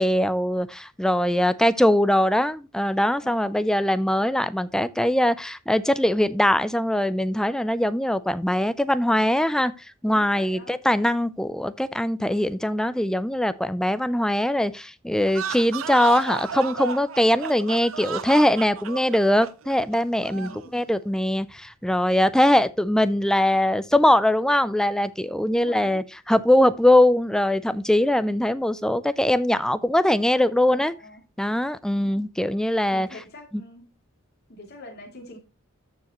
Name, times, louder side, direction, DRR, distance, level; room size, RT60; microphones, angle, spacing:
voice 1, 0.0-9.7 10.0-30.9 31.4-33.1, left 1 dB, 5° left, 0.4 m, -22 dB
voice 2, 3.2-3.7 10.0-10.8 20.3-20.6 25.6-26.0 30.7-31.2 32.0-32.2 32.9-33.9 34.5-35.4, left 1 dB, 50° left, 2.7 m, -44 dB
sound 1, 15.2-20.7, right 6 dB, 65° right, 0.6 m, -33 dB
14.0 x 4.9 x 3.0 m
head